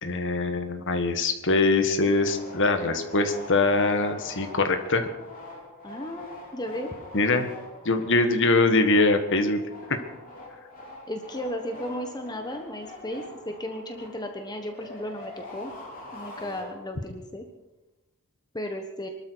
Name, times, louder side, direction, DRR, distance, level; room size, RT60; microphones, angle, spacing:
voice 1, 0.0-5.1 7.1-7.5 7.8-9.6 9.9-10.0, left 3 dB, 60° left, 8 dB, 1.6 m, -23 dB
sound 1, 2.2-17.2, left 1 dB, 40° left, 4.5 m, -44 dB
voice 2, 5.8-6.9 11.1-15.7 16.1-17.4 18.5-19.1, left 1 dB, 20° left, 5 dB, 1.2 m, -35 dB
23.0 x 13.0 x 4.7 m, 1.0 s
head